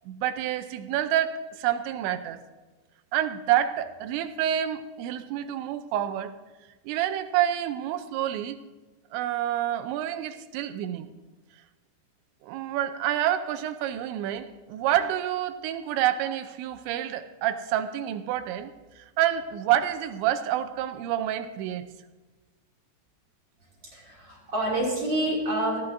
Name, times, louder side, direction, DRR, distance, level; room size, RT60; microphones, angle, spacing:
voice 1, 0.1-2.4 3.1-6.4 6.9-8.6 9.1-11.1 12.4-21.9, right 11 dB, 85° right, 10 dB, 2.9 m, -28 dB
voice 2, 23.8-25.8, right 1 dB, 30° right, -4 dB, 2.5 m, -28 dB
18.0 x 14.0 x 2.6 m, 1.2 s
omnidirectional pair, 5.2 m